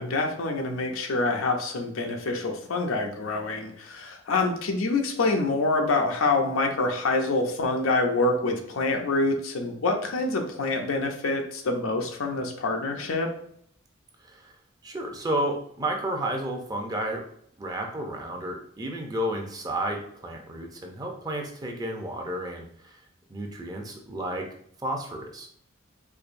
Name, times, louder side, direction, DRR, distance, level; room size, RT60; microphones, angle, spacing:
voice 1, 0.0-13.3, left 3 dB, 90° left, 3 dB, 0.6 m, -26 dB
voice 2, 14.8-17.2 17.6-23.0 23.3-24.5 24.8-25.5, right 1 dB, 20° right, 2 dB, 0.5 m, -32 dB
4.7 x 2.6 x 2.5 m, 0.66 s
head